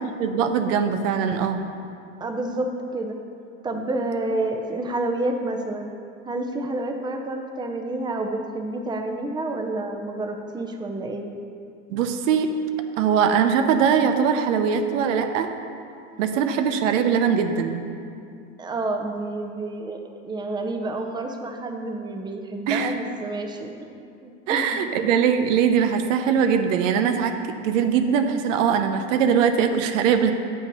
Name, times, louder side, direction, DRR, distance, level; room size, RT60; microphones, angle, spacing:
voice 1, 0.2-1.6 11.9-12.5 13.0-15.5 16.2-17.8 22.7-22.9 24.5-30.3, right 7 dB, 85° right, 7 dB, 0.7 m, -21 dB
voice 2, 2.2-3.2 3.6-5.9 6.3-11.2 18.6-23.7 24.2-24.8, right 2 dB, 10° right, 4 dB, 0.6 m, -29 dB
7.7 x 5.6 x 5.3 m, 2.5 s
supercardioid pair, 105°, 38 cm